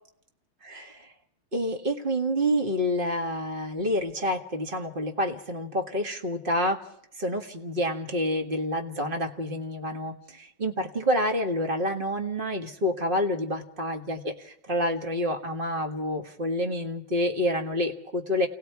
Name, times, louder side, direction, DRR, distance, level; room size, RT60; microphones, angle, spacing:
voice 1, 0.6-1.1 1.5-6.8 7.2-18.5, equal, 30° right, 4 dB, 1.7 m, -28 dB
29.0 x 19.0 x 4.7 m, 0.72 s
omnidirectional pair, 2.2 m